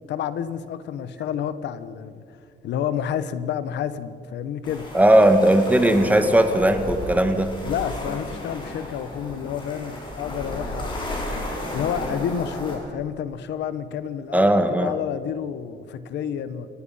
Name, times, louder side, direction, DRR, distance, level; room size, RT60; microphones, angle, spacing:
voice 1, 0.1-2.2 2.6-4.9 7.6-11.2 11.7-16.7, left 9 dB, 80° left, 13 dB, 1.2 m, -29 dB
sound 1, 4.6-12.8, left 1 dB, 25° left, 6.6 m, -33 dB
voice 2, 4.9-7.5 14.3-14.9, right 1 dB, 10° right, 8 dB, 1.7 m, -17 dB
29.5 x 17.0 x 5.7 m, 2.4 s
cardioid pair, 140°, 18 cm